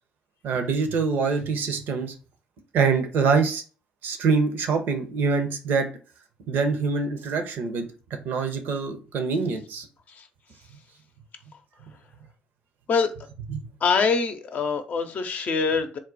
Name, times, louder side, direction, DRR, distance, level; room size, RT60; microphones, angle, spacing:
voice 1, 0.4-2.1 2.7-3.6 4.0-5.9 6.5-7.9 8.2-9.9 13.5-13.7, right 5 dB, 60° right, 0.7 m, -24 dB
voice 2, 13.8-16.0, left 5 dB, 50° left, 0.6 m, -24 dB
3.6 x 2.2 x 3.9 m
figure-of-eight pair, 45°, 4 cm